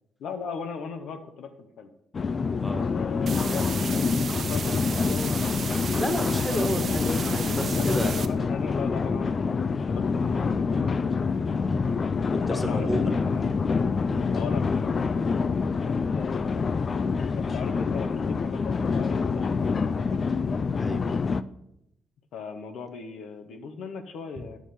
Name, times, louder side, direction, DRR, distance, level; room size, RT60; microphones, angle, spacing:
voice 1, 0.2-1.9 2.8-5.5 7.7-11.3 12.4-13.5 14.3-16.7 17.3-20.2 22.3-24.6, left 5 dB, 75° left, 7 dB, 0.9 m, -38 dB
sound 1, 2.1-21.4, left 5 dB, 40° left, 0.4 m, -26 dB
sound 2, 3.3-8.3, right 6 dB, 55° right, 0.7 m, -35 dB
voice 2, 6.0-8.1 12.3-13.1 14.1-14.3 20.8-21.0, left 1 dB, 10° left, 6 dB, 1.4 m, -30 dB
9.2 x 7.3 x 4.2 m, 0.80 s
cardioid pair, 90°, 0 cm